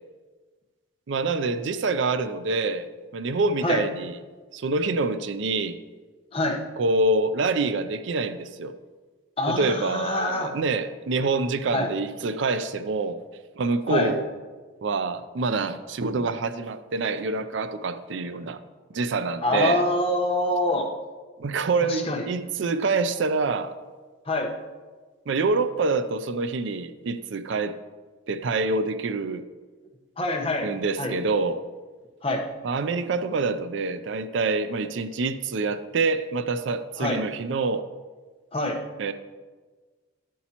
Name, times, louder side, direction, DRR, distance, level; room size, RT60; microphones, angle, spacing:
voice 1, 1.1-2.9 3.1-4.2 4.5-5.8 6.8-8.7 9.5-13.2 13.6-14.3 14.8-18.6 18.9-19.8 21.4-23.7 25.3-27.8 28.3-29.4 30.6-31.6 32.6-37.8 39.0-39.1, right 3 dB, 65° right, 12 dB, 0.4 m, -26 dB
voice 2, 9.4-10.5 11.7-11.9 13.9-14.1 19.4-20.9 21.8-22.2 24.3-24.5 30.2-30.7 31.0-31.1 32.2-32.4 37.0-37.2 38.5-38.8, left 1 dB, 30° left, 1 dB, 1.0 m, -25 dB
11.5 x 8.4 x 2.9 m, 1.4 s
head